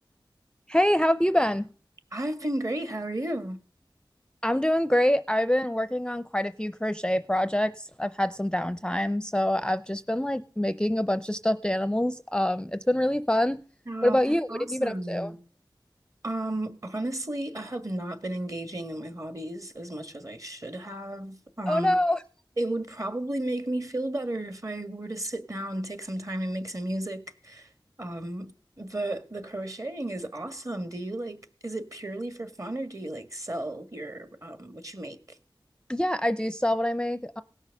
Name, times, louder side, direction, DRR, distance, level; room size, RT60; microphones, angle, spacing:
voice 1, 0.7-1.7 4.4-13.6 14.0-15.3 21.7-22.2 35.9-37.4, left 1 dB, 10° left, 0.6 m, -25 dB
voice 2, 2.1-3.6 13.9-14.2 14.5-15.4 16.2-22.0 22.6-27.7 28.0-28.5 28.8-35.2, right 1 dB, 40° right, 1.7 m, -33 dB
17.5 x 6.3 x 6.4 m
wide cardioid pair, 40°, 9 cm